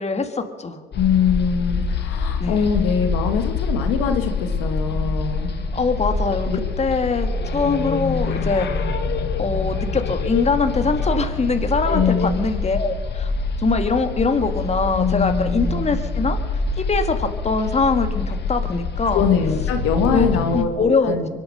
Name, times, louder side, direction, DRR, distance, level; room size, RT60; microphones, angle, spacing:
voice 1, 0.0-0.8 2.4-2.6 5.7-6.5 6.8-8.7 9.4-13.3 13.6-19.3 20.1-20.3 20.5-21.1, left 4 dB, 30° left, 7 dB, 1.8 m, -22 dB
sound 1, 0.9-20.6, left 3 dB, 55° left, 1.7 m, -25 dB
voice 2, 1.0-5.5 6.5-6.6 11.9-12.4 15.0-15.8 19.1-20.7 21.0-21.3, left 7 dB, 85° left, 6 dB, 1.8 m, -22 dB
24.0 x 9.2 x 6.6 m, 1.5 s
supercardioid pair, 65°, 21 cm